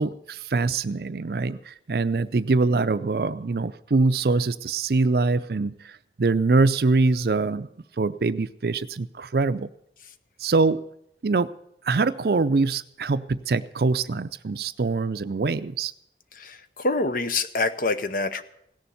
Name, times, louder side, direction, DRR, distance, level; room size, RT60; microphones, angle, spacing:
voice 1, 0.0-5.9 6.2-7.7 8.0-9.7 10.4-10.8 11.2-11.5 11.8-15.9, right 3 dB, 60° right, 14 dB, 0.5 m, -23 dB
voice 2, 16.3-18.4, left 3 dB, 50° left, 11 dB, 0.7 m, -26 dB
17.0 x 7.0 x 9.2 m, 0.76 s
head